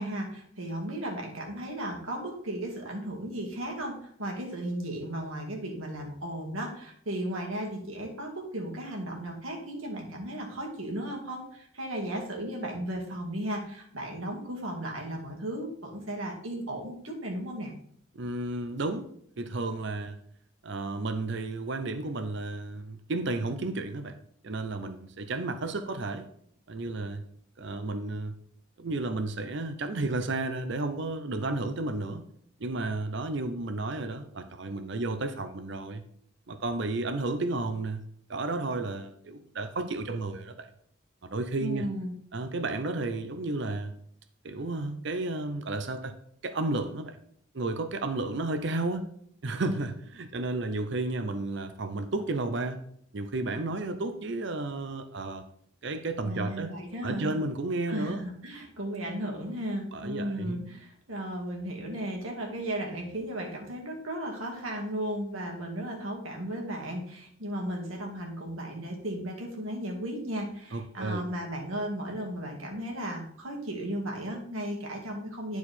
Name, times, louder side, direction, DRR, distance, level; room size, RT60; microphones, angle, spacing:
voice 1, 0.0-17.7 41.6-42.1 56.2-57.4 57.9-75.6, right 1 dB, 85° right, 0 dB, 2.1 m, -35 dB
voice 2, 18.1-19.1 19.4-20.2 20.6-24.1 24.4-26.3 26.7-27.2 27.6-28.4 28.8-32.2 32.6-36.0 36.5-38.0 38.3-40.7 41.2-41.8 42.3-43.9 44.4-46.1 46.4-47.2 47.5-49.1 49.4-52.8 53.1-55.4 55.8-56.7 57.0-58.3 59.9-60.6 70.7-71.3, right 2 dB, 55° right, 9 dB, 0.6 m, -32 dB
10.0 x 4.7 x 4.3 m, 0.65 s
head